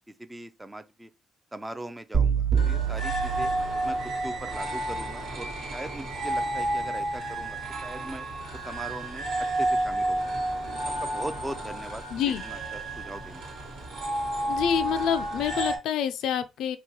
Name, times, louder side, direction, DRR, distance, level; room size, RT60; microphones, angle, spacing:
voice 1, 0.2-1.1 1.5-3.5 3.8-4.0 4.2-8.2 8.6-9.3 9.5-10.4 11.0-12.6 13.0-13.4, right 1 dB, 10° right, 0.4 m, -40 dB
sound 1, 2.1-4.3, right 7 dB, 55° right, 1.2 m, -26 dB
sound 2, 2.5-15.8, right 1 dB, 75° right, 1.3 m, -31 dB
voice 2, 12.1-12.4 14.5-16.8, left 9 dB, 85° left, 0.3 m, -27 dB
2.9 x 2.2 x 3.8 m
cardioid pair, 90°, 0 cm